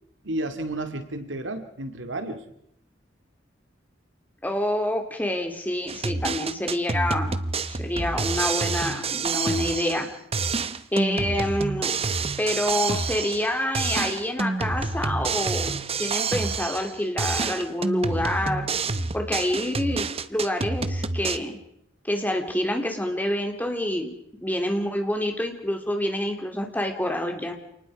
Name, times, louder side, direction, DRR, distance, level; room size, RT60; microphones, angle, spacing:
voice 1, 0.2-2.4, right 1 dB, 90° right, 8 dB, 2.3 m, -32 dB
voice 2, 4.4-7.3 7.7-10.1 10.9-11.9 12.4-18.7 19.1-21.6 22.0-24.1 24.4-27.5, left 1 dB, 10° left, 4 dB, 2.9 m, -27 dB
sound 1, 5.9-10.1 10.3-13.5 13.7-16.9 17.2-21.4, right 4 dB, 35° right, 0.9 m, -28 dB
28.5 x 20.0 x 4.9 m, 0.76 s
head